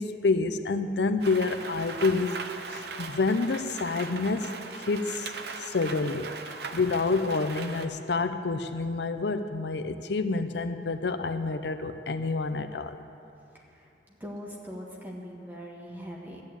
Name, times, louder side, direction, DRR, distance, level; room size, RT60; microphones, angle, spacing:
voice 1, 0.0-2.4 2.7-4.5 4.8-5.3 5.6-6.3 6.7-13.0, left 3 dB, 75° left, 9 dB, 0.6 m, -28 dB
Rain, 1.2-7.9, right 4 dB, 70° right, 0.8 m, -39 dB
voice 2, 13.5-16.4, equal, 10° right, -2 dB, 1.7 m, -42 dB
13.0 x 8.8 x 8.8 m, 2.7 s
head